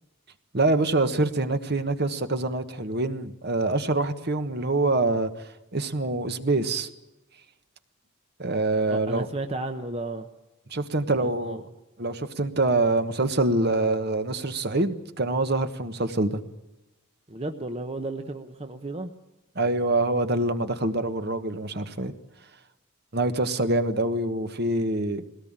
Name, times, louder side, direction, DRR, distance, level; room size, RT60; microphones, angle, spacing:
voice 1, 0.5-5.3 5.7-6.9 8.4-9.3 10.7-11.7 12.0-16.4 19.5-22.1 23.1-25.2, right 2 dB, 50° right, 9 dB, 1.3 m, -25 dB
voice 2, 8.9-10.3 11.2-11.6 17.3-19.1, right 2 dB, 30° right, 6 dB, 0.9 m, -33 dB
21.0 x 18.0 x 8.9 m, 1.0 s
head